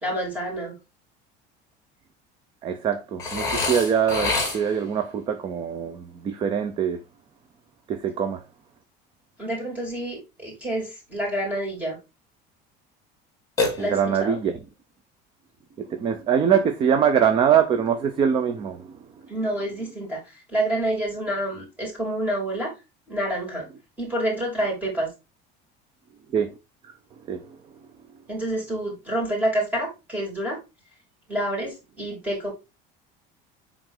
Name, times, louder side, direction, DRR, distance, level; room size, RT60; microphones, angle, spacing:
voice 1, 0.0-0.7 9.4-12.0 13.8-14.4 19.3-22.7 23.1-23.7 24.0-25.1 28.3-30.6 31.3-32.5, right 1 dB, 5° right, 3.2 m, -28 dB
voice 2, 2.6-7.0 7.9-8.4 13.8-14.5 15.8-19.0 26.3-26.6 27.3-27.6, right 8 dB, 25° right, 0.5 m, -23 dB
Burping eructation, 3.2-4.9 13.6-14.4, left 3 dB, 15° left, 2.6 m, -27 dB
7.8 x 3.7 x 3.8 m
cardioid pair, 180°, 21 cm